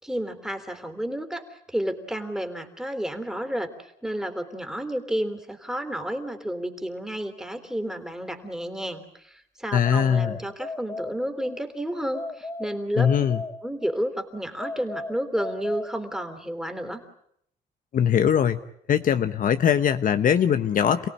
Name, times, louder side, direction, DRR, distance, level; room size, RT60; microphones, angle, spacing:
voice 1, 0.0-13.1 13.6-17.0, equal, 5° right, 6 dB, 3.4 m, -31 dB
voice 2, 9.7-10.4 13.0-13.4 17.9-18.6 18.9-21.1, left 8 dB, 55° left, 9 dB, 1.1 m, -21 dB
sound 1, 9.8-11.6 12.1-14.0 14.6-16.5, left 2 dB, 20° left, 1.8 m, -37 dB
28.5 x 17.5 x 9.9 m, 0.72 s
cardioid pair, 100°, 17 cm